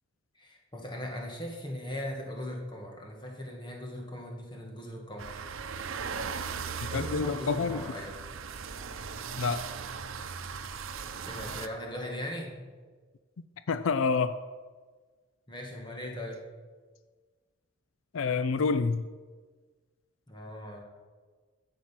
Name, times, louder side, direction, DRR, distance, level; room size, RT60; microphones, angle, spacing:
voice 1, 0.4-5.4 6.9-8.1 11.2-12.5 15.5-16.4 20.3-20.8, left 1 dB, 20° left, 1.9 m, -39 dB
sound 1, 5.2-11.7, right 5 dB, 85° right, 0.7 m, -38 dB
voice 2, 6.9-7.8 9.4-9.6 13.7-14.4 18.1-19.0, left 4 dB, 80° left, 0.4 m, -27 dB
11.5 x 8.0 x 5.9 m
head